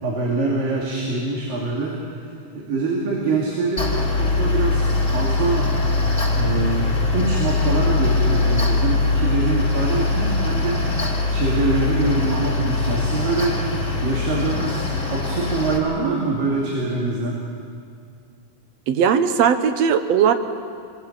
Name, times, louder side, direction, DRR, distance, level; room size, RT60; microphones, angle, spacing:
voice 1, 0.0-5.7 6.3-10.8 11.3-13.6 14.0-17.4, right 3 dB, 85° right, -3 dB, 4.4 m, -24 dB
Mechanical fan, 3.8-15.8, left 3 dB, 15° left, 2.8 m, -21 dB
voice 2, 18.9-20.3, right 7 dB, 65° right, 9 dB, 1.8 m, -18 dB
27.5 x 21.0 x 7.5 m, 2.3 s
omnidirectional pair, 3.9 m